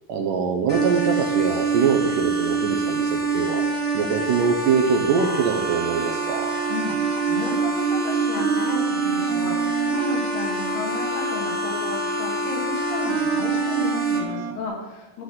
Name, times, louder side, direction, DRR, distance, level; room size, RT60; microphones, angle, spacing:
voice 1, 0.1-3.6 3.9-6.5, right 5 dB, 75° right, 3 dB, 2.1 m, -23 dB
sound 1, 0.7-14.2, right 4 dB, 35° left, 0.9 m, -26 dB
sound 2, 5.2-5.6 6.9-7.3 8.3-8.9, left 6 dB, 70° left, 2.7 m, -37 dB
sound 3, 5.2-14.5, right 2 dB, 90° right, 2.9 m, -30 dB
voice 2, 6.7-15.2, left 3 dB, 85° left, -2 dB, 4.1 m, -33 dB
12.0 x 4.0 x 7.9 m, 1.1 s
omnidirectional pair, 4.4 m